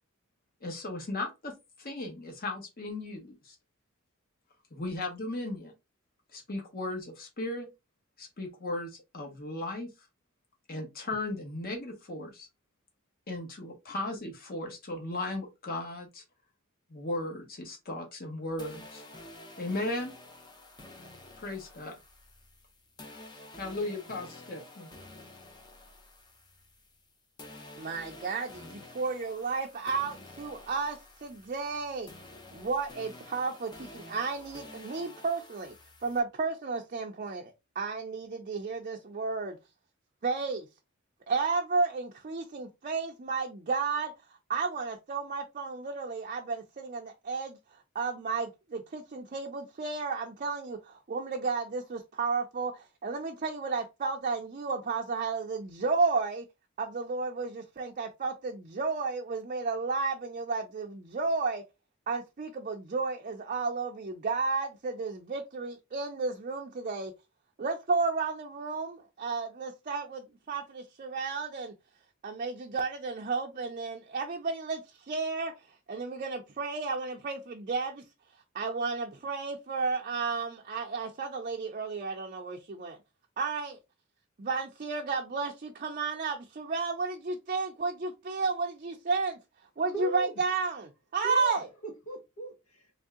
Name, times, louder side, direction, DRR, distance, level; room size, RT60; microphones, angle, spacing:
voice 1, 0.6-3.5 4.7-5.7 6.3-7.7 8.2-9.9 10.7-12.5 13.3-16.2 16.9-19.0 19.6-20.1 21.4-21.9 23.6-24.9, left 2 dB, 45° left, 1.2 m, -36 dB
sound 1, 18.6-27.1 27.4-36.2, left 2 dB, 20° left, 0.7 m, -50 dB
voice 2, 27.8-32.1 32.5-35.7 36.0-39.6 40.2-40.7 41.3-44.1 44.5-47.6 47.9-56.4 56.8-61.6 62.1-67.1 67.6-71.7 72.2-75.5 75.9-78.0 78.5-83.0 83.4-83.8 84.4-89.4 89.8-91.7, right 4 dB, 40° right, 0.5 m, -32 dB
voice 3, 89.8-90.3 91.2-91.5 91.8-93.0, right 2 dB, 80° left, 1.5 m, -38 dB
3.3 x 2.7 x 3.6 m
head